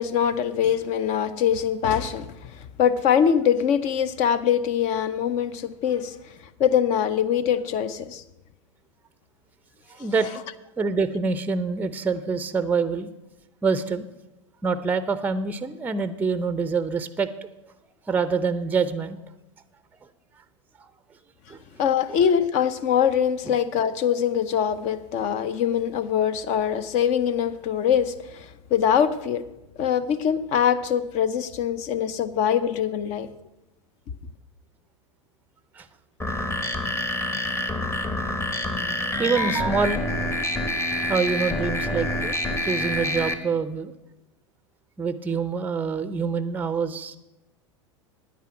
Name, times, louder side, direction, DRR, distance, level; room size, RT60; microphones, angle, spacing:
voice 1, 0.0-2.3 2.6-6.1 6.6-8.2 21.8-29.4 29.8-33.3, left 8 dB, 45° left, 0.7 m, -23 dB
voice 2, 9.9-10.3 10.8-13.1 13.6-14.1 14.6-17.3 18.1-19.2 21.5-21.6 23.5-23.6 35.8-35.9 38.7-40.1 41.1-42.3 42.6-43.9 45.0-47.2, right 5 dB, 10° right, 0.5 m, -26 dB
sound 1, 36.2-43.3, left 1 dB, 15° left, 1.0 m, -27 dB
9.7 x 9.2 x 5.9 m
hypercardioid pair, 95°, 16 cm